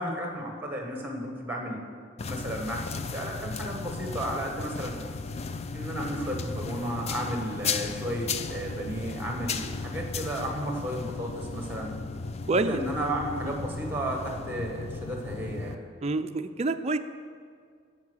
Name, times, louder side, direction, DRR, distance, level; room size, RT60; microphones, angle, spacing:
voice 1, 0.0-1.8 2.3-5.0 5.7-11.9 12.6-15.8, right 1 dB, 10° right, 1 dB, 1.5 m, -33 dB
sound 1, 2.2-15.8, left 4 dB, 30° left, 0.4 m, -35 dB
voice 2, 12.5-12.8 13.4-13.5 16.0-17.0, right 3 dB, 30° right, 8 dB, 0.4 m, -27 dB
16.0 x 5.6 x 6.3 m, 2.1 s
head